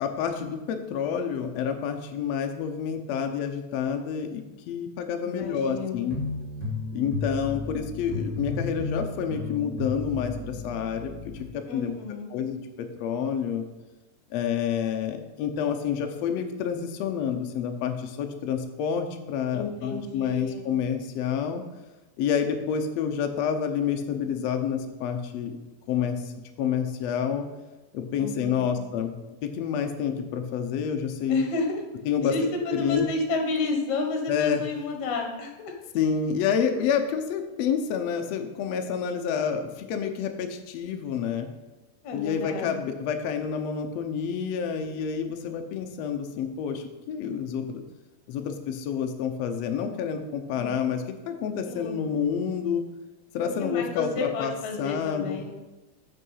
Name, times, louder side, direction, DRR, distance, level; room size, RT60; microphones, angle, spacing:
voice 1, 0.0-6.2 6.9-11.1 11.7-11.9 12.3-13.6 14.3-21.6 22.2-25.6 25.9-26.3 26.6-27.5 27.9-29.1 29.4-31.4 32.0-33.1 34.3-34.6 35.9-41.5 42.1-47.8 48.3-52.8 53.3-54.5 54.8-55.4, left 7 dB, 80° left, 5 dB, 1.5 m, -28 dB
voice 2, 5.2-6.1 11.7-12.3 19.5-20.7 28.2-28.7 31.3-31.8 32.2-35.7 42.0-42.7 50.5-50.9 51.7-52.0 53.4-55.5, left 3 dB, 60° left, 2 dB, 2.4 m, -31 dB
sound 1, 6.1-11.4, left 3 dB, 10° left, 2.3 m, -33 dB
8.4 x 6.6 x 5.5 m, 1.1 s
omnidirectional pair, 4.0 m